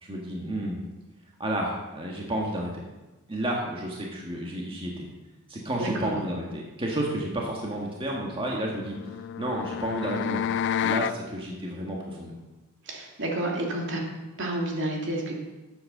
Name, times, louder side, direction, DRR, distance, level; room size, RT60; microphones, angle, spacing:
voice 1, 0.0-0.8 1.4-2.7 3.3-5.1 5.5-10.4 10.8-12.3, right 1 dB, 25° right, -2 dB, 1.7 m, -31 dB
voice 2, 5.8-6.2 12.8-14.0 14.4-15.4, right 1 dB, 60° right, -1 dB, 2.6 m, -30 dB
sound 1, 8.6-11.2, left 9 dB, 55° left, 0.3 m, -30 dB
11.0 x 8.1 x 6.7 m, 1.1 s
head